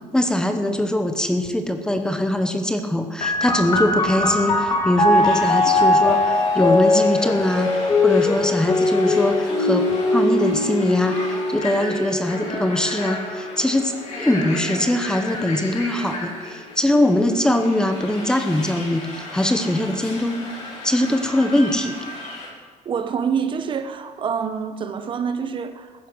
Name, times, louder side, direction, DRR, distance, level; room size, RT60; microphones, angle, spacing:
voice 1, 0.1-11.2 11.5-13.9 14.2-20.4 20.8-21.9, left 1 dB, 5° left, 7 dB, 1.0 m, -22 dB
sound 1, 3.2-16.4 17.3-18.1, left 2 dB, 30° left, 2.1 m, -22 dB
sound 2, 5.1-22.5, left 2 dB, 55° left, 5.3 m, -35 dB
voice 2, 22.8-25.9, right 6 dB, 35° right, 9 dB, 1.0 m, -26 dB
15.0 x 11.0 x 6.2 m, 1.5 s
cardioid pair, 145°, 14 cm